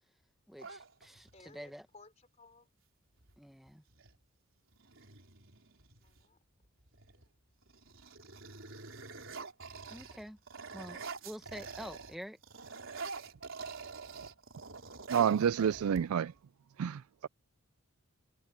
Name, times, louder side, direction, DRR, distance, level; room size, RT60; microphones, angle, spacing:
voice 1, 0.5-1.9 3.4-3.8 9.9-10.4 10.7-12.4, equal, ahead, 1.3 m, -47 dB
sound 1, 0.6-1.5 3.2-3.3 3.7-4.2 4.7-6.2 6.9-7.3 7.6-12.2 12.4-16.4, right 4 dB, 60° right, 4.3 m, -46 dB
voice 2, 1.1-2.7 6.0-6.4 7.0-7.3, left 3 dB, 30° left, 4.5 m, -60 dB
voice 3, 15.1-16.3 16.8-17.3, right 8 dB, 80° right, 0.3 m, -29 dB
head